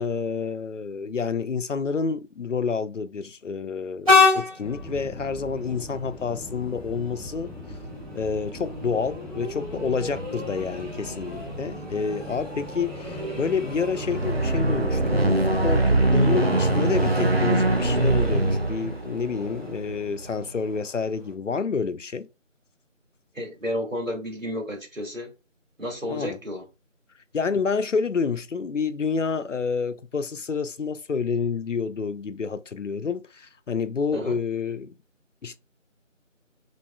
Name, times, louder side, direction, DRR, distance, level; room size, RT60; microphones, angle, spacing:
voice 1, 0.0-7.5 8.1-22.3 26.1-26.4 27.3-34.9 35.4-35.6, left 5 dB, 70° left, 0.5 m, -29 dB
Train, 4.0-21.3, left 4 dB, 25° right, 1.9 m, -30 dB
sound 1, 4.6-17.6, equal, ahead, 0.6 m, -40 dB
sound 2, 13.9-20.3, right 2 dB, 55° right, 0.5 m, -22 dB
voice 2, 23.3-25.3 25.8-26.6 34.1-34.4, left 1 dB, 80° right, 2.0 m, -32 dB
6.1 x 2.6 x 2.3 m
figure-of-eight pair, 175°, 39 cm